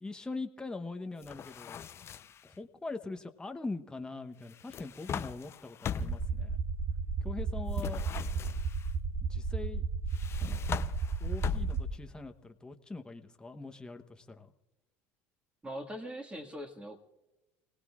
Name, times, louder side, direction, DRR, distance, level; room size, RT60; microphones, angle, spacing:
voice 1, 0.0-1.8 2.4-6.6 7.2-8.0 9.3-9.8 11.2-14.5, left 3 dB, 10° left, 6 dB, 1.0 m, -42 dB
sound 1, 1.2-2.5 4.5-6.3 7.7-8.9 10.1-12.1, left 8 dB, 40° left, 0.6 m, -39 dB
sound 2, 6.0-11.8, right 5 dB, 60° right, 1.6 m, -33 dB
voice 2, 15.6-17.0, equal, 15° right, 4 dB, 1.9 m, -41 dB
29.0 x 18.0 x 2.5 m, 1.0 s
supercardioid pair, 90°, 7 cm